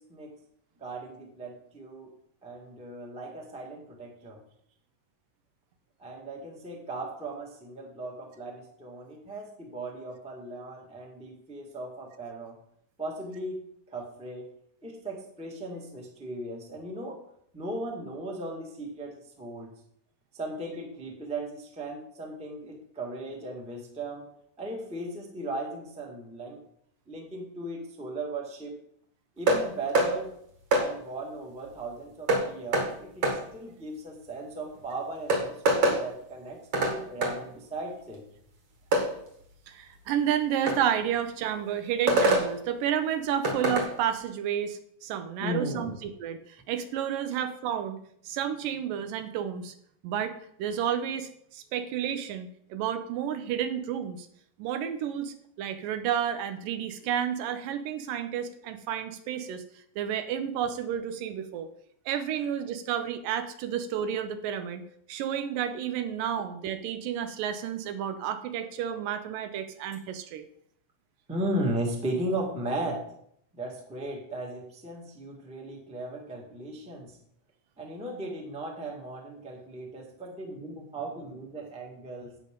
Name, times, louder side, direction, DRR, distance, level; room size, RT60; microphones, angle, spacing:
voice 1, 0.8-2.1 2.4-4.4 6.0-12.5 13.0-13.6 13.9-14.5 14.8-17.2 17.5-19.7 20.3-24.2 24.6-26.6 27.1-28.8 29.4-30.3 30.8-38.2 45.4-46.0 71.3-73.0 73.5-77.1 77.8-82.4, right 1 dB, 5° right, -1 dB, 1.0 m, -37 dB
sound 1, 29.5-29.6 29.9-30.1 30.7-30.9 32.3-32.4 32.7-32.9 33.2-33.4 34.7-34.8 35.3-36.0 36.7-36.9 37.2-37.3 38.9-39.1 40.7-40.8 42.1-42.5 43.4-43.9, right 2 dB, 50° right, 2.5 m, -23 dB
voice 2, 39.7-48.0 48.2-49.7 50.0-50.3 50.6-54.3 54.6-59.6 60.0-61.7 62.1-64.8 65.1-70.4, right 9 dB, 85° right, 9 dB, 2.5 m, -31 dB
11.5 x 8.4 x 3.8 m, 0.69 s
omnidirectional pair, 3.8 m